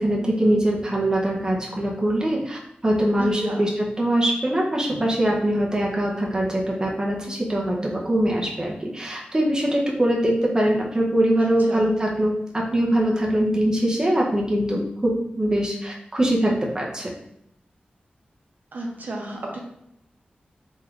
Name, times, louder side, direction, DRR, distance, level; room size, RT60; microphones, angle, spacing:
voice 1, 0.0-17.1, right 1 dB, 20° right, -2 dB, 0.6 m, -22 dB
voice 2, 3.2-3.6 11.4-11.9 18.7-19.6, right 1 dB, 65° right, 0 dB, 0.6 m, -32 dB
3.5 x 3.0 x 2.3 m, 0.78 s
wide cardioid pair, 105°, 3 cm